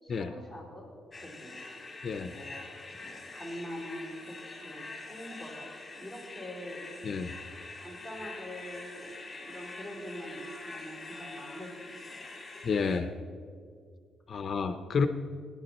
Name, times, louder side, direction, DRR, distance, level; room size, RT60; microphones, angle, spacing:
voice 1, 0.0-0.9 1.2-1.6 2.2-2.7 3.0-5.7 5.9-6.8 7.8-9.1 9.3-12.3 14.8-14.9, equal, 15° right, -5 dB, 4.0 m, -44 dB
sound 1, 1.1-13.0, left 3 dB, 15° left, 2.0 m, -45 dB
voice 2, 2.0-2.3 7.0-7.3 12.6-13.1 14.3-15.1, left 5 dB, 40° left, 9 dB, 0.6 m, -30 dB
19.0 x 10.5 x 4.2 m, 2.2 s
cardioid pair, 145°, 0 cm